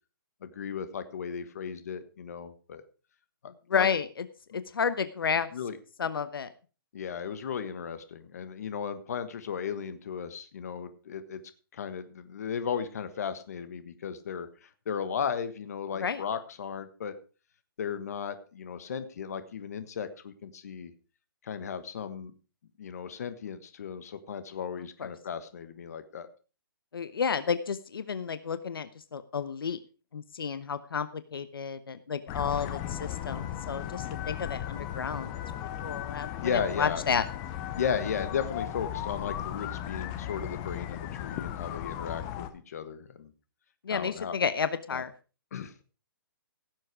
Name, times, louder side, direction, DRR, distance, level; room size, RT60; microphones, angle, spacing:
voice 1, 0.4-2.8 3.4-3.9 5.5-5.8 6.9-11.4 11.7-17.1 17.8-20.9 21.4-22.3 22.8-26.3 36.4-37.0 37.7-43.3 43.9-44.4 44.9-45.0 45.5-45.7, left 7 dB, 45° left, 11 dB, 1.4 m, -35 dB
voice 2, 3.7-4.2 4.5-5.5 6.0-6.5 16.0-16.2 25.0-25.1 26.9-29.8 30.1-35.4 35.8-37.3 43.8-45.1, left 6 dB, 80° left, 12 dB, 1.0 m, -31 dB
sound 1, 32.3-42.5, left 11 dB, 15° left, 0.6 m, -36 dB
16.5 x 7.6 x 4.8 m, 0.35 s
hypercardioid pair, 175°, 12 cm